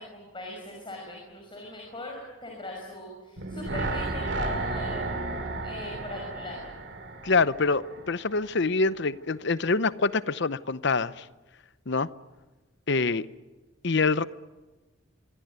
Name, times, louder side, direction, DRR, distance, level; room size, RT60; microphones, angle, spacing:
voice 1, 0.0-5.2 5.6-6.7, left 1 dB, 25° left, 0 dB, 5.9 m, -40 dB
sound 1, 3.4-8.5 8.8-8.9, right 2 dB, 60° right, 2.7 m, -33 dB
voice 2, 7.2-11.3 11.9-12.1 12.9-13.3 13.8-14.2, left 4 dB, 55° left, 15 dB, 0.8 m, -25 dB
24.5 x 24.5 x 9.5 m, 1.2 s
head